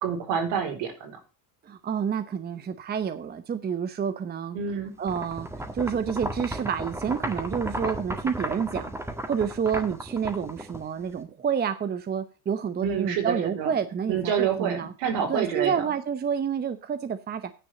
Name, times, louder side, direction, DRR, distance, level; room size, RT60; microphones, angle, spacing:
voice 1, 0.0-1.2 4.5-4.9 12.8-13.7 14.1-15.7, right 7 dB, 70° right, 4.1 m, -27 dB
voice 2, 1.6-4.6 5.0-5.5 5.7-8.9 9.3-14.9 15.3-17.4, right 7 dB, 20° right, 0.8 m, -29 dB
sound 1, 5.1-11.2, right 1 dB, 5° right, 1.8 m, -34 dB
9.9 x 5.3 x 7.8 m
supercardioid pair, 110°, 45 cm